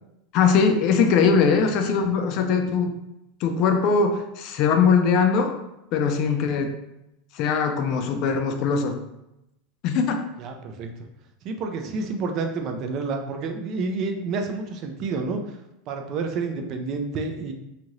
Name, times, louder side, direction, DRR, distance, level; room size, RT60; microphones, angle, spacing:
voice 1, 0.3-2.9 3.4-5.5 5.9-6.7 7.3-9.0 9.8-10.2, left 5 dB, 40° left, 6 dB, 0.3 m, -21 dB
voice 2, 10.4-10.9 11.4-15.6 15.9-17.5, right 4 dB, 40° right, 5 dB, 0.4 m, -29 dB
2.7 x 2.5 x 3.0 m, 0.89 s
supercardioid pair, 160°, 0 cm